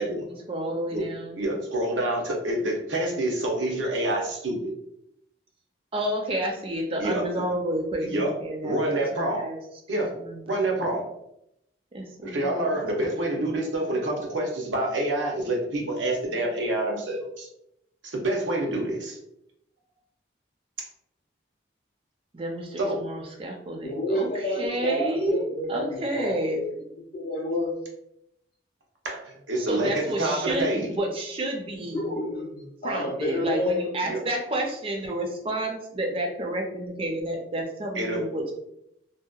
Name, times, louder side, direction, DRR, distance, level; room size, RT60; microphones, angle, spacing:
voice 1, 0.2-1.4 5.9-9.6 10.0-10.4 11.9-12.7 22.3-26.6 29.7-32.2 32.8-38.5, right 1 dB, 30° right, 1 dB, 0.4 m, -30 dB
voice 2, 1.4-4.7 7.0-7.4 8.0-8.3 8.6-9.4 9.9-10.1 10.5-11.0 12.2-17.5 18.0-19.2 22.8-23.0 29.0-30.9 34.0-34.2 37.9-38.2, right 1 dB, 90° right, 0 dB, 0.7 m, -27 dB
voice 3, 23.8-26.7 27.1-27.8 31.9-33.9, left 1 dB, 50° left, -3 dB, 0.4 m, -29 dB
2.7 x 2.1 x 2.3 m, 0.80 s
head